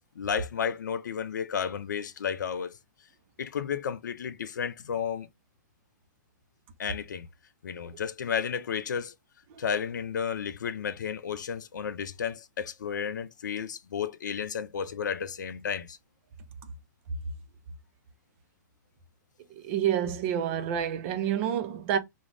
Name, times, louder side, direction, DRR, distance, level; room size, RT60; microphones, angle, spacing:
voice 1, 0.0-2.8 3.4-5.3 6.8-7.3 7.6-9.1 9.6-16.0, left 7 dB, 75° left, 0.4 m, -32 dB
voice 2, 19.5-22.0, right 9 dB, 40° right, 0.5 m, -28 dB
2.4 x 2.0 x 3.2 m
hypercardioid pair, 115°, 10 cm